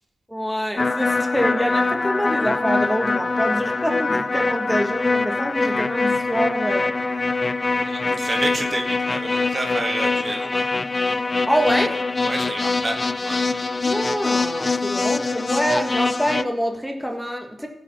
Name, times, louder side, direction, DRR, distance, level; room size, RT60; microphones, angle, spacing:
voice 1, 0.3-6.9 8.1-8.2 11.5-12.0 13.8-17.7, equal, ahead, 3 dB, 1.7 m, -25 dB
sound 1, 0.8-16.4, left 3 dB, 35° left, 0.5 m, -23 dB
voice 2, 7.8-10.7 12.2-13.4, right 1 dB, 30° right, 4 dB, 1.6 m, -29 dB
15.5 x 6.3 x 6.1 m, 0.95 s
cardioid pair, 80°, 0 cm